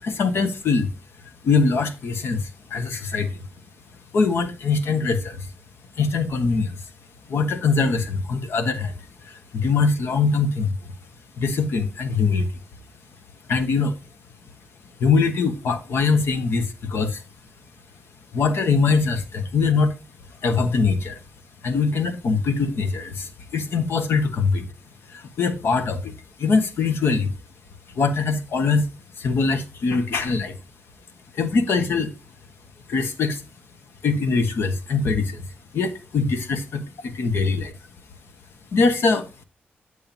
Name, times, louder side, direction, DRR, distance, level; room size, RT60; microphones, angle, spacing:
voice 1, 0.0-0.9 1.4-3.4 4.1-5.5 6.0-6.8 7.3-8.9 9.2-10.9 11.4-12.6 13.5-14.0 15.0-17.2 18.3-19.9 20.4-21.2 21.6-24.7 25.1-26.1 26.4-27.4 27.9-28.9 29.2-30.5 31.3-32.1 32.9-33.4 34.0-35.4 35.7-37.7 38.7-39.3, left 4 dB, 80° left, 1.3 m, -22 dB
8.8 x 6.7 x 2.7 m
cardioid pair, 85°, 4 cm